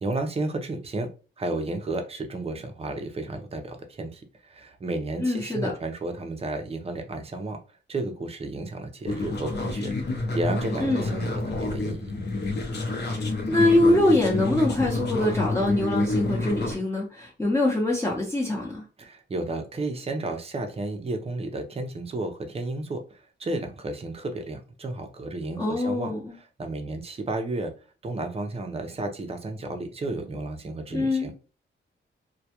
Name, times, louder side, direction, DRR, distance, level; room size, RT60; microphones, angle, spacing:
voice 1, 0.0-1.1 1.4-7.6 7.9-9.9 10.3-12.2 19.0-27.7 28.0-31.4, right 2 dB, 30° right, 0.5 m, -32 dB
voice 2, 5.2-5.7 10.8-11.1 13.1-13.2 13.5-18.8 25.6-26.3 30.9-31.3, left 1 dB, 15° left, 0.7 m, -23 dB
sound 1, 9.0-16.8, left 2 dB, 60° left, 0.7 m, -29 dB
2.2 x 2.1 x 2.8 m
cardioid pair, 85°, 20 cm